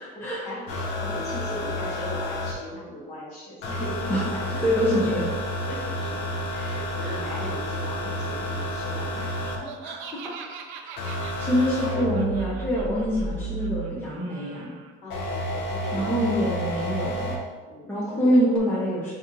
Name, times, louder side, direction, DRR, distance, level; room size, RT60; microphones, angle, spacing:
voice 1, 0.0-4.9 5.7-9.3 9.6-9.9 15.0-16.2 17.7-18.3, left 1 dB, 35° left, -7 dB, 1.5 m, -38 dB
sound 1, 0.7-2.5 3.6-9.6 11.0-13.9 15.1-17.3 18.5-18.6, equal, 60° left, 0.7 m, -30 dB
voice 2, 4.6-5.1 7.0-7.2 9.8-10.0 10.2-10.3 11.4-14.7 15.9-17.4 17.9-19.1, equal, 10° left, -8 dB, 0.6 m, -25 dB
Laughter, 9.3-14.9, right 6 dB, 65° right, 0.5 m, -43 dB
5.8 x 2.7 x 2.6 m, 1.4 s
cardioid pair, 155°, 21 cm